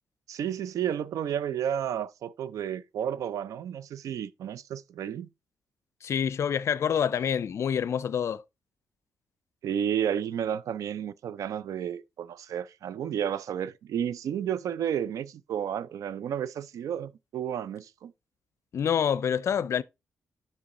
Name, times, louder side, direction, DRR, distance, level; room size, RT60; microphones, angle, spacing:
voice 1, 0.3-5.3 9.6-18.1, right 9 dB, 75° right, 0.5 m, -32 dB
voice 2, 6.0-8.4 18.7-19.8, left 8 dB, 55° left, 0.5 m, -27 dB
7.0 x 5.7 x 3.8 m
cardioid pair, 115°, 6 cm